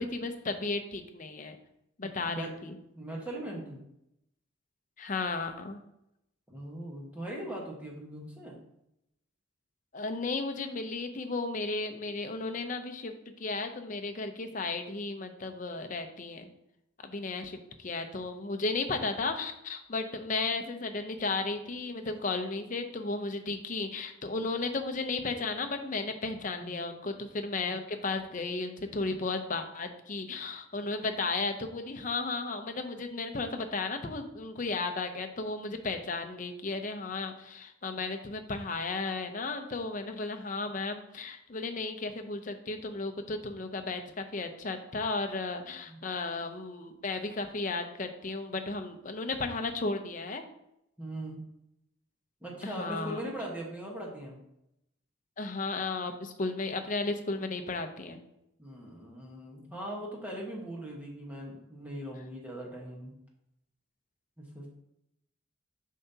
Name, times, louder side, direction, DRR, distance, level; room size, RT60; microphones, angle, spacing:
voice 1, 0.0-1.6 2.0-2.7 5.0-5.8 9.9-16.5 17.0-50.4 52.6-53.2 55.4-58.2, left 3 dB, 40° left, 6 dB, 0.6 m, -34 dB
voice 2, 2.9-3.8 6.5-8.6 26.6-26.8 45.9-46.0 51.0-51.5 52.4-54.4 58.6-63.2 64.4-64.7, right 1 dB, 5° right, -3 dB, 1.2 m, -40 dB
7.2 x 5.7 x 2.8 m, 0.83 s
head